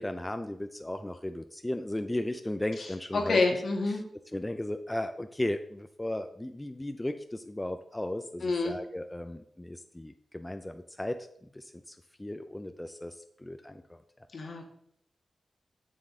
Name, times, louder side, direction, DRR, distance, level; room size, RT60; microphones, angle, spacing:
voice 1, 0.0-3.6 3.9-4.0 4.3-11.2 11.5-14.0, left 1 dB, 15° left, 8 dB, 0.5 m, -36 dB
voice 2, 3.1-4.0 8.4-8.7 14.3-14.7, left 3 dB, 65° left, 3 dB, 1.6 m, -27 dB
7.4 x 6.9 x 3.7 m, 0.67 s
cardioid pair, 60°, 0 cm